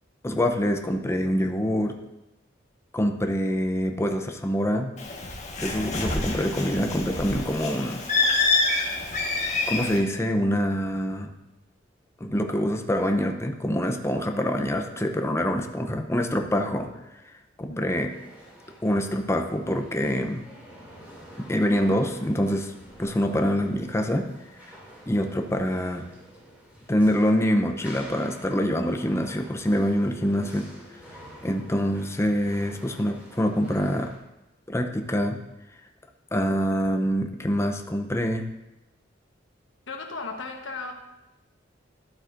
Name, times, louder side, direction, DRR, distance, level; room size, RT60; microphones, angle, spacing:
voice 1, 0.2-2.0 2.9-4.9 5.6-8.0 9.7-11.3 12.2-16.9 17.6-18.1 18.8-20.4 21.4-22.7 23.0-24.3 25.1-26.0 26.9-30.7 31.4-34.1 34.7-35.4 36.3-38.5, equal, 15° left, 4 dB, 0.6 m, -25 dB
Bird, 5.0-10.0, left 3 dB, 40° left, 1.5 m, -27 dB
sound 1, 18.1-34.2, equal, 10° right, 2.5 m, -48 dB
voice 2, 39.9-40.9, left 3 dB, 85° left, 3 dB, 1.2 m, -35 dB
12.0 x 7.9 x 2.6 m, 0.97 s
head